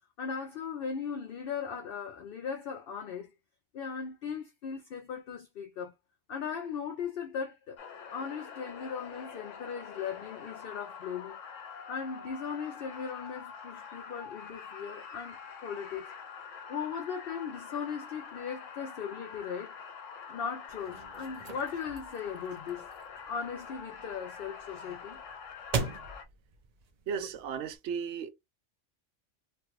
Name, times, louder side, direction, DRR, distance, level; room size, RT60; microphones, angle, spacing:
voice 1, 0.2-3.3 3.7-5.9 6.3-7.8 8.1-11.4 11.9-16.1 16.7-19.8 20.3-22.9 23.2-25.2, left 6 dB, 60° left, 0.7 m, -38 dB
sound 1, 7.8-26.2, left 6 dB, 85° left, 1.0 m, -46 dB
sound 2, 20.7-27.8, right 4 dB, 55° right, 0.4 m, -41 dB
voice 2, 27.1-28.3, right 7 dB, 70° right, 0.8 m, -35 dB
3.2 x 2.3 x 3.0 m
omnidirectional pair, 1.3 m